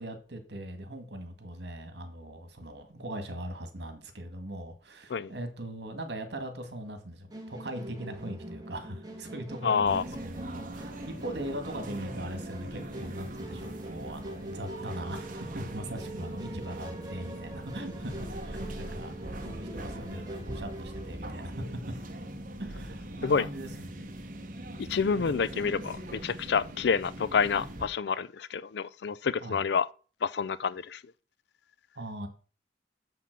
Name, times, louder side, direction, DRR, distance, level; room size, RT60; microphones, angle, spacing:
voice 1, 0.0-19.2 19.4-21.8 22.6-24.1 29.4-29.6 32.0-32.3, right 1 dB, 65° right, 1.9 m, -40 dB
Musical instrument, 7.3-21.1, right 1 dB, 20° right, 1.6 m, -44 dB
voice 2, 9.6-10.0 23.2-23.4 24.8-29.9 30.2-31.0, left 5 dB, 65° left, 0.4 m, -28 dB
sound 1, 9.9-27.9, right 1 dB, 45° right, 1.1 m, -41 dB
7.1 x 5.9 x 6.0 m
head